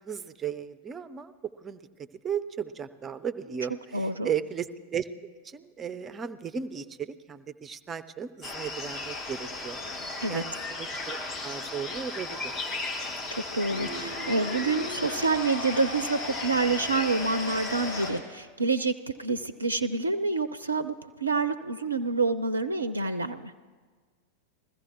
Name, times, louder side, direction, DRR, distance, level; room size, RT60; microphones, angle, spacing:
voice 1, 0.0-1.3 1.6-1.8 2.2-5.1 5.4-9.8 10.3-10.5 10.8-12.5, right 8 dB, 20° right, 12 dB, 0.6 m, -35 dB
voice 2, 3.9-4.3 10.2-10.4 13.5-23.5, right 3 dB, 80° right, 11 dB, 0.4 m, -28 dB
sound 1, 8.4-18.1, left 3 dB, 25° left, 1.3 m, -36 dB
sound 2, 13.7-18.2, left 1 dB, 65° left, 2.8 m, -38 dB
21.0 x 14.5 x 3.0 m, 1.5 s
figure-of-eight pair, 90°, 0 cm